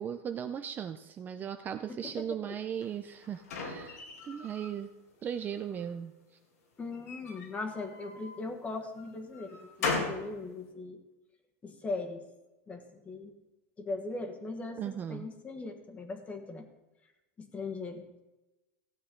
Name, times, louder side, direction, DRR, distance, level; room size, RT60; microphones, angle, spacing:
voice 1, 0.0-4.9 5.2-6.1 14.8-15.2, right 8 dB, 25° right, 8 dB, 0.5 m, -37 dB
voice 2, 1.9-2.2 6.8-11.0 11.6-12.2 12.7-13.4 13.8-16.6 17.4-18.2, left 3 dB, 15° left, 6 dB, 1.4 m, -39 dB
sound 1, 2.8-4.7 5.2-5.9 6.9-8.4 9.0-10.3, left 3 dB, 90° left, 2.6 m, -38 dB
15.5 x 8.5 x 3.8 m, 1.0 s
supercardioid pair, 140°, 8 cm